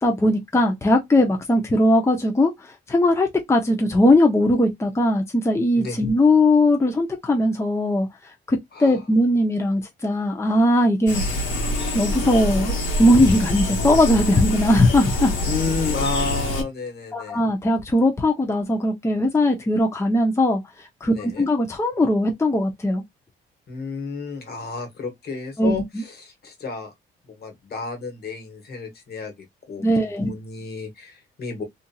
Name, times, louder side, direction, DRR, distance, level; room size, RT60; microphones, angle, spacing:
voice 1, 0.0-11.2 11.9-15.4 17.1-23.0 25.6-25.8 29.8-30.3, left 1 dB, 15° left, 0.6 m, -19 dB
sound 1, 11.1-16.6, left 1 dB, 75° left, 1.3 m, -25 dB
voice 2, 15.4-17.4 21.1-21.5 23.7-26.9 27.2-29.3 29.7-31.6, left 4 dB, 55° left, 1.3 m, -31 dB
2.8 x 2.5 x 2.3 m
cardioid pair, 90°, 20 cm